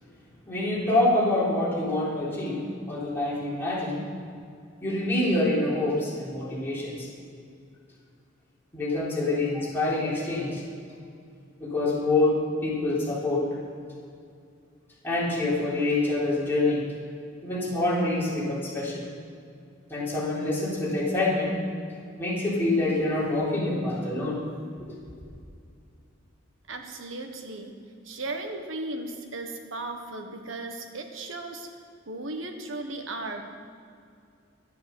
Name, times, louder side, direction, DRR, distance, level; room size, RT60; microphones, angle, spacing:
voice 1, 0.5-2.6 2.9-4.0 4.8-7.1 8.7-10.6 11.6-13.5 15.0-16.8 17.4-19.0 19.9-21.6 22.2-24.4, left 2 dB, 10° left, -8 dB, 3.9 m, -26 dB
voice 2, 26.7-27.7 28.0-31.7 32.1-33.4, right 2 dB, 85° right, 4 dB, 1.4 m, -36 dB
11.5 x 8.8 x 7.2 m, 2.4 s
head